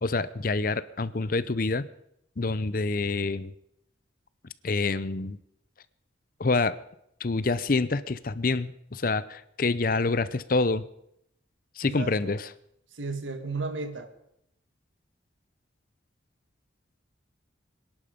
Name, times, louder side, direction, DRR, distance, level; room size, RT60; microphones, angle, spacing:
voice 1, 0.0-1.9 2.4-3.5 4.6-5.4 6.4-6.8 7.2-10.8 11.8-12.5, left 3 dB, 45° left, 16 dB, 0.6 m, -27 dB
voice 2, 11.8-12.3 12.9-14.1, right 3 dB, 80° right, 9 dB, 1.7 m, -34 dB
24.5 x 11.0 x 5.2 m, 0.76 s
head